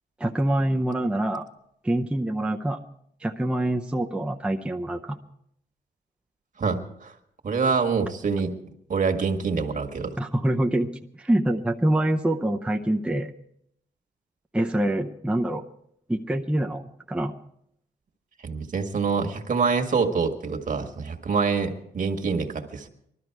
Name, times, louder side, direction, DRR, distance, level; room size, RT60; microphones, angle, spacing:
voice 1, 0.2-1.5 1.8-2.8 3.2-5.2 10.2-10.9 11.2-13.3 14.5-15.6 16.1-17.3, right 1 dB, 5° right, 2 dB, 0.6 m, -25 dB
voice 2, 6.6-7.1 7.4-8.5 8.9-10.2 18.4-22.9, right 5 dB, 50° right, 6 dB, 1.6 m, -26 dB
20.0 x 13.0 x 4.7 m, 0.73 s
cardioid pair, 115°, 17 cm